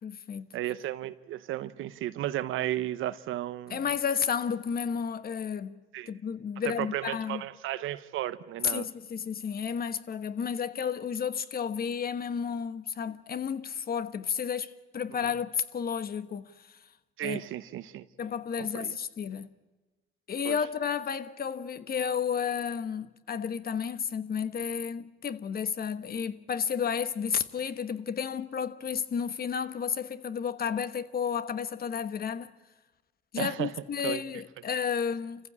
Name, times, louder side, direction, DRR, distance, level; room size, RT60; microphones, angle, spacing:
voice 1, 0.0-0.5 3.7-7.4 8.6-16.8 17.2-17.4 18.2-19.5 20.3-32.5 33.3-35.5, left 7 dB, 50° left, 1.2 m, -32 dB
voice 2, 0.5-3.8 5.9-6.1 6.8-8.9 17.2-18.1 18.6-19.0 20.4-20.6 33.4-33.7 34.0-34.2, right 13 dB, 85° right, 1.0 m, -34 dB
28.5 x 15.0 x 8.7 m
cardioid pair, 90°, 20 cm